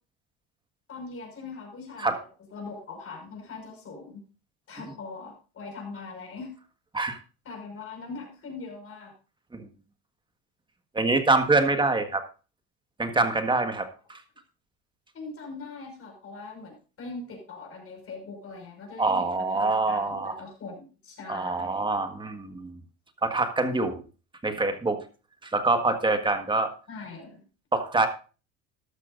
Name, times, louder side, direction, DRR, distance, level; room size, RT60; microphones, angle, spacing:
voice 1, 0.9-4.2 4.7-6.5 7.4-9.1 15.1-21.9 26.9-27.4, left 4 dB, 40° left, 2 dB, 5.5 m, -41 dB
voice 2, 10.9-12.2 13.0-14.2 19.0-20.4 21.3-22.8 23.2-24.0 24.4-25.0 25.4-26.7 27.7-28.1, right 3 dB, 15° right, 7 dB, 1.6 m, -25 dB
13.5 x 12.0 x 2.6 m, 0.34 s
cardioid pair, 115°, 35 cm